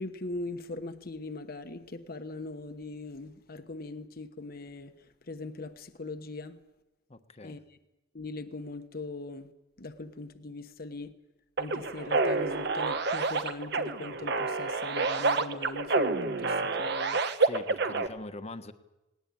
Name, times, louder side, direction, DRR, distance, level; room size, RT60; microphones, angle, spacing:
voice 1, 0.0-6.6 7.4-7.8 8.1-9.5 9.8-11.1 11.6-17.2, left 2 dB, 55° left, 1.2 m, -41 dB
voice 2, 7.1-7.6 17.4-18.7, left 2 dB, 35° left, 1.2 m, -43 dB
sound 1, 11.6-18.1, right 3 dB, 65° right, 1.3 m, -28 dB
20.0 x 18.5 x 8.7 m
head